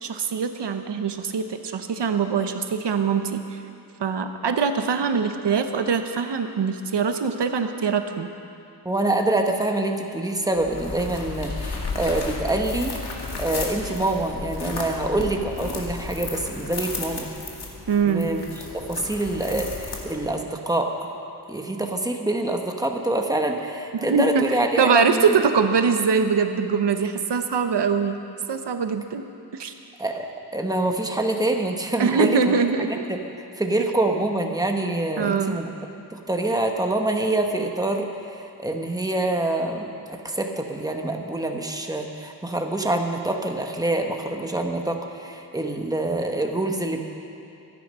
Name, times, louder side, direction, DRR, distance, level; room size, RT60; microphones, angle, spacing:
voice 1, 0.0-3.6 4.0-8.3 17.9-18.3 23.9-28.2 28.5-29.2 29.5-29.7 32.0-33.0 35.2-35.6, right 5 dB, 90° right, 7 dB, 0.9 m, -23 dB
voice 2, 8.8-13.0 13.4-17.3 18.0-18.5 18.7-21.0 21.5-25.2 30.0-30.3 30.5-33.2 33.6-35.7 36.1-38.1 38.4-39.9 40.2-47.0, right 2 dB, 10° right, 3 dB, 1.2 m, -25 dB
sound 1, 10.5-20.4, left 3 dB, 70° left, 2.2 m, -33 dB
24.0 x 9.5 x 5.6 m, 2.7 s
wide cardioid pair, 115°, 40 cm